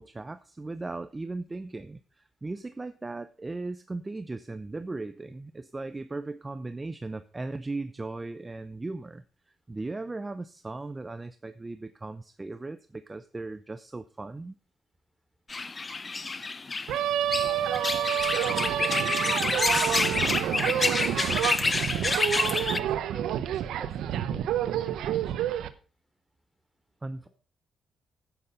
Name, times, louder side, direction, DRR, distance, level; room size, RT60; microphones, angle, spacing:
voice 1, 0.0-14.6 27.0-27.3, right 2 dB, 20° right, 11 dB, 0.7 m, -37 dB
sound 1, 15.5-22.8, left 3 dB, 30° left, 0.7 m, -28 dB
sound 2, 16.9-25.7, right 11 dB, 90° right, 1.0 m, -28 dB
voice 2, 17.4-17.8 18.7-21.6 22.2-25.5, equal, 5° left, 5 dB, 3.5 m, -49 dB
10.0 x 9.0 x 5.5 m, 0.38 s
cardioid pair, 100°, 0 cm